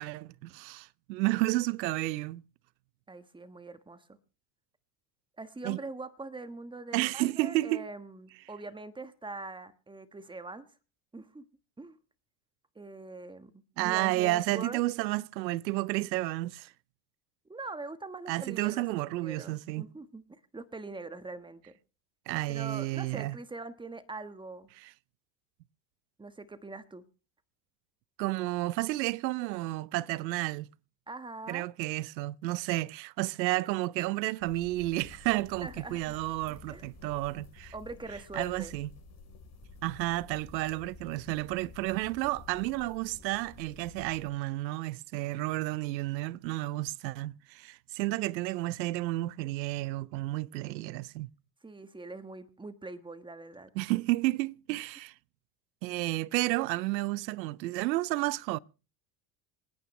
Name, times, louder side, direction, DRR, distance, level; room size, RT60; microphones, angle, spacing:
voice 1, 0.0-2.4 5.6-5.8 6.9-7.9 13.8-16.7 18.3-19.8 22.3-23.4 24.8-24.9 28.2-30.7 31.5-37.7 38.4-38.9 39.8-51.3 53.8-55.1 55.8-58.6, right 18 dB, 85° right, 0.6 m, -31 dB
voice 2, 3.1-4.2 5.4-10.7 11.1-11.4 11.8-12.0 12.7-14.8 17.4-18.8 19.2-21.7 22.5-24.7 26.2-27.0 31.1-31.6 35.6-36.2 36.5-36.9 37.7-38.7 51.6-53.7, right 3 dB, 10° right, 1.3 m, -43 dB
sound 1, 34.4-44.3, left 3 dB, 35° left, 5.2 m, -52 dB
27.0 x 9.4 x 3.1 m
hypercardioid pair, 90°, 50 cm